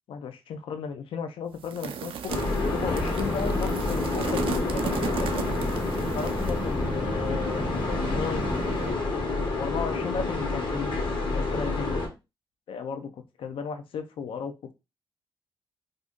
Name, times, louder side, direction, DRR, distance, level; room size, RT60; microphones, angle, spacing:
voice 1, 0.1-2.3 2.7-5.5 6.1-8.6 9.6-10.9 11.3-11.9 12.7-14.7, left 6 dB, 80° left, 8 dB, 0.4 m, -35 dB
sound 1, 1.6-6.7, right 7 dB, 80° right, 0.4 m, -36 dB
sound 2, 2.3-12.1, left 3 dB, 60° left, 1.0 m, -29 dB
sound 3, 2.4-8.9, right 1 dB, 10° right, 0.5 m, -33 dB
2.5 x 2.5 x 3.5 m, 0.25 s
cardioid pair, 75°, 9 cm